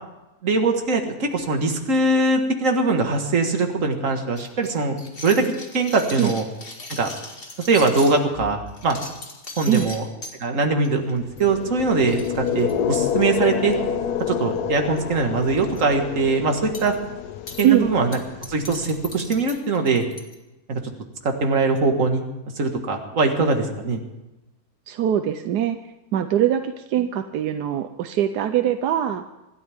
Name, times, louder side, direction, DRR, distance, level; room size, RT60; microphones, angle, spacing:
voice 1, 0.4-5.4 5.7-6.4 7.0-7.1 7.7-9.0 9.6-10.1 10.4-12.2 12.5-13.8 14.3-17.0 17.6-18.2 18.5-20.0 20.7-20.8 21.2-22.2 22.6-24.0, right 3 dB, 55° right, 4 dB, 2.1 m, -21 dB
sound 1, 4.4-8.2 8.7-10.3 10.8-11.1 11.4-11.5 11.8-11.9 12.1-13.4 14.2-14.6 14.9-15.0 15.4-15.8 16.7-17.0 17.5-17.7 18.1-20.3, left 2 dB, 35° left, 2.0 m, -38 dB
sound 2, 11.3-19.4, left 8 dB, 75° left, 1.4 m, -28 dB
voice 2, 17.6-17.9 24.9-25.8 26.1-29.2, right 10 dB, 85° right, 8 dB, 1.3 m, -22 dB
26.0 x 13.0 x 3.6 m, 0.99 s
omnidirectional pair, 1.7 m